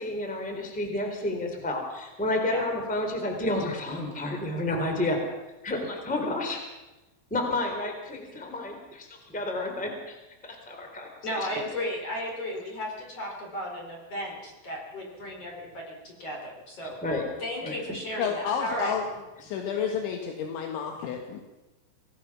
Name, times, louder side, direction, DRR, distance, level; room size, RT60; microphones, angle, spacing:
voice 1, 0.0-5.2 5.6-6.6 7.3-10.2 10.4-11.5 17.0-17.2 17.6-17.7, left 2 dB, ahead, 3 dB, 2.8 m, -30 dB
voice 2, 11.2-17.0 17.4-18.9, left 1 dB, 35° left, 0 dB, 4.8 m, -34 dB
voice 3, 18.2-19.0 19.4-21.4, left 7 dB, 80° left, 3 dB, 4.0 m, -30 dB
25.5 x 18.0 x 6.1 m, 1.0 s
omnidirectional pair, 5.4 m